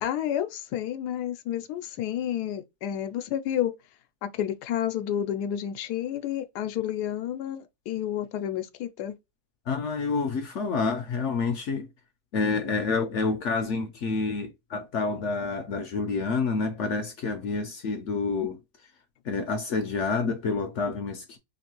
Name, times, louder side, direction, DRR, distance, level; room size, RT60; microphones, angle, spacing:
voice 1, 0.0-3.7 4.2-9.1, left 10 dB, 90° left, 1.1 m, -30 dB
voice 2, 9.7-11.9 12.3-18.6 19.2-21.4, left 4 dB, 65° left, 0.7 m, -28 dB
3.0 x 2.5 x 2.8 m
omnidirectional pair, 1.7 m